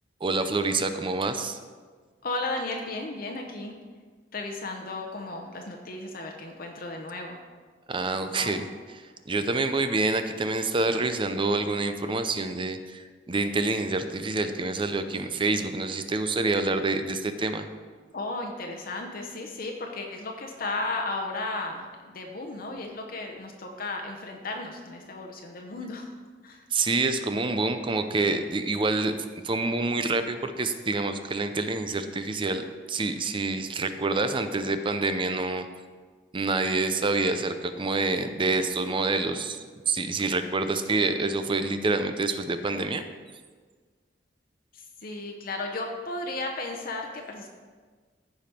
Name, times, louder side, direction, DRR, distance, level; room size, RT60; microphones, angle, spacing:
voice 1, 0.2-1.6 7.9-8.6 9.3-17.7 26.7-29.2 29.4-35.7 36.3-43.1, right 3 dB, 30° right, 9 dB, 0.6 m, -27 dB
voice 2, 2.2-3.7 4.3-7.4 8.3-8.6 18.1-26.1 26.4-26.6 44.7-47.5, left 2 dB, 55° left, 2 dB, 0.8 m, -34 dB
14.5 x 5.2 x 4.4 m, 1.5 s
head